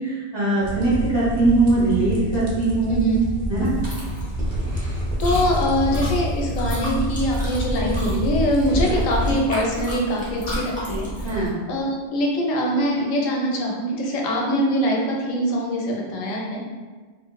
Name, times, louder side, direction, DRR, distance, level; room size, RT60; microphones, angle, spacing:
voice 1, 0.0-2.9 3.5-3.7 11.2-11.5, right 2 dB, 25° right, -11 dB, 0.8 m, -21 dB
sound 1, 0.6-9.3, right 1 dB, 85° right, 0.3 m, -28 dB
Chewing mastication, 3.6-11.5, equal, 15° left, 0.3 m, -30 dB
voice 2, 5.2-16.6, equal, 85° left, -1 dB, 1.0 m, -23 dB
2.9 x 2.1 x 2.2 m, 1.4 s
omnidirectional pair, 1.3 m